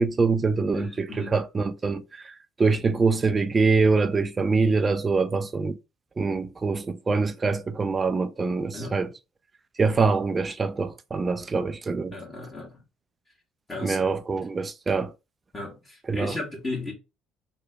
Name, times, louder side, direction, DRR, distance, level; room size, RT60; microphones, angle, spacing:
voice 1, 0.0-2.3 2.6-5.8 6.2-9.1 9.8-12.1 13.8-15.1 16.1-16.4, right 4 dB, 30° right, 0.4 m, -24 dB
voice 2, 0.7-1.3 8.7-9.0 12.1-12.8 13.7-14.1 15.5-16.9, left 2 dB, 25° left, 1.3 m, -35 dB
3.2 x 2.2 x 3.5 m
hypercardioid pair, 55°, 0 cm